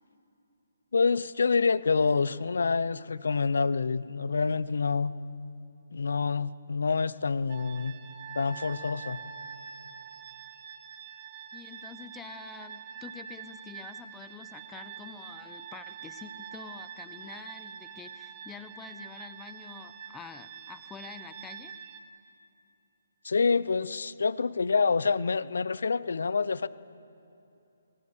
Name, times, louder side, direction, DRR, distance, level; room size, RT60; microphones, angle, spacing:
voice 1, 0.9-5.1 5.9-7.9 8.3-9.2 23.2-26.7, left 4 dB, 70° left, 18 dB, 0.7 m, -27 dB
sound 1, 7.5-22.0, right 7 dB, 35° right, 2.1 m, -45 dB
voice 2, 11.5-21.8, left 6 dB, 10° left, 11 dB, 0.9 m, -47 dB
23.0 x 19.5 x 6.8 m, 2.9 s
hypercardioid pair, 150°, 0 cm